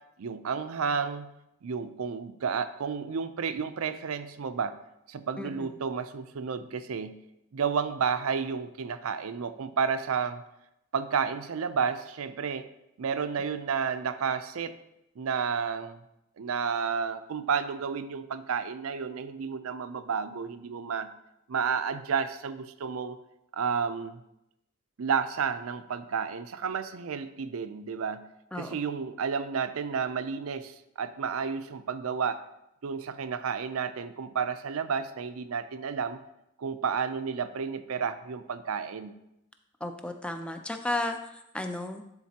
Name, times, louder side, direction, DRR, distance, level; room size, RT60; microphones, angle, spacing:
voice 1, 0.2-1.3 1.6-4.7 5.1-7.2 7.5-10.4 10.9-12.7 13.0-14.7 15.2-16.0 16.4-21.1 21.5-23.2 23.5-24.2 25.0-28.2 28.6-32.4 32.8-36.2 36.6-39.1, right 6 dB, 75° right, 11 dB, 0.5 m, -31 dB
voice 2, 5.4-5.7 28.5-28.7 39.8-41.2 41.5-42.0, left 2 dB, 5° left, 6 dB, 0.4 m, -33 dB
11.5 x 4.0 x 2.9 m, 0.85 s
head